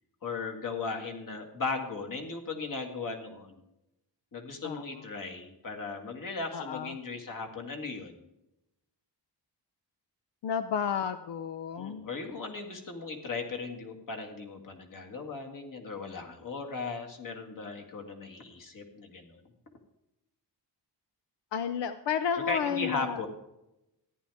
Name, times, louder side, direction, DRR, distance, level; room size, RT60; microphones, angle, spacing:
voice 1, 0.2-3.6 4.3-8.3 11.8-19.4 22.5-23.3, left 4 dB, 50° left, 3 dB, 2.0 m, -37 dB
voice 2, 6.5-6.9 10.4-12.1 21.5-23.2, left 7 dB, 90° left, 10 dB, 0.7 m, -31 dB
14.0 x 10.5 x 3.5 m, 0.89 s
wide cardioid pair, 140°, 41 cm